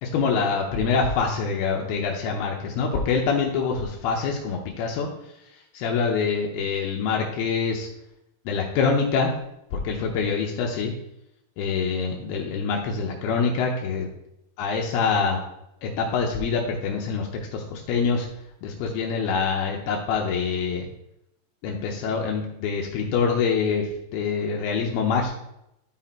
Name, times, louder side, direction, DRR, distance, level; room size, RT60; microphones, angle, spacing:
voice 1, 0.0-5.1 5.7-7.9 8.5-9.3 9.7-10.9 11.6-14.1 14.6-15.4 15.8-18.3 18.6-20.9 21.6-23.9 24.1-25.3, left 5 dB, 80° left, 0 dB, 2.9 m, -25 dB
12.5 x 4.2 x 4.4 m, 0.83 s
omnidirectional pair, 4.6 m